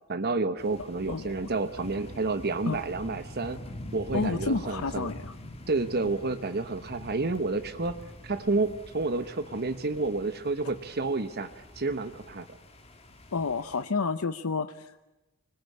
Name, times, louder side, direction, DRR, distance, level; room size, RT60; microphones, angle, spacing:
voice 1, 0.1-3.6 3.9-5.1 5.7-8.0 8.2-12.5, right 3 dB, 50° right, 9 dB, 1.1 m, -30 dB
sound 1, 0.6-13.8, left 1 dB, 30° left, 2.4 m, -45 dB
voice 2, 1.1-1.5 2.7-2.8 4.1-5.3 13.3-15.0, left 4 dB, 80° left, 10 dB, 0.8 m, -30 dB
25.5 x 21.0 x 8.6 m, 1.0 s
head